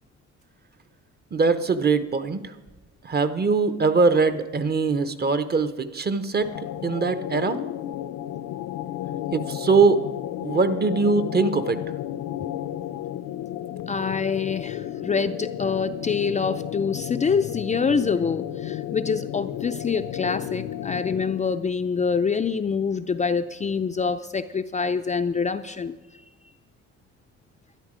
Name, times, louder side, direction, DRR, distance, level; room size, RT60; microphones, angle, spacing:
voice 1, 1.3-2.5 3.0-6.5 6.8-7.6 9.3-10.0 10.4-11.8, right 4 dB, 35° right, 11 dB, 0.8 m, -22 dB
sound 1, 6.4-21.5, left 12 dB, 85° left, 0.6 m, -33 dB
voice 2, 13.9-26.0, left 5 dB, 25° left, 8 dB, 0.4 m, -26 dB
12.5 x 10.5 x 5.0 m, 1.2 s
cardioid pair, 90°, 30 cm